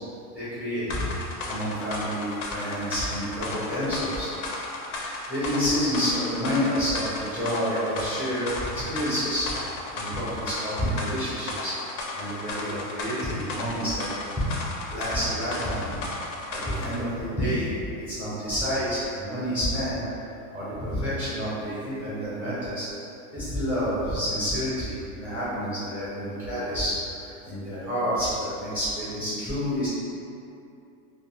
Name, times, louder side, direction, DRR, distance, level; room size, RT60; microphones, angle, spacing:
voice 1, 0.3-1.0 1.5-4.3 5.3-8.5 8.7-9.5 9.9-11.7 12.1-14.1 14.9-16.0 16.5-17.7 18.1-20.0 20.5-22.9 23.3-29.9, equal, 5° right, -12 dB, 0.4 m, -29 dB
sound 1, 0.9-17.0, left 2 dB, 55° left, 0.5 m, -35 dB
2.2 x 2.1 x 3.4 m, 2.6 s
supercardioid pair, 155°, 46 cm